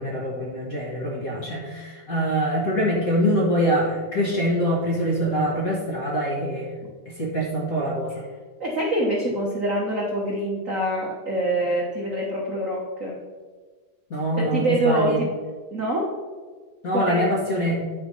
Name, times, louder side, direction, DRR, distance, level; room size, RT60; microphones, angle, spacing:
voice 1, 0.0-6.6 7.2-8.1 14.1-15.2 16.8-17.8, equal, 45° left, -3 dB, 1.2 m, -24 dB
voice 2, 8.6-13.2 14.4-15.3 15.7-16.1 16.9-17.3, right 1 dB, 75° right, -3 dB, 0.7 m, -25 dB
10.0 x 4.5 x 5.4 m, 1.4 s
omnidirectional pair, 3.3 m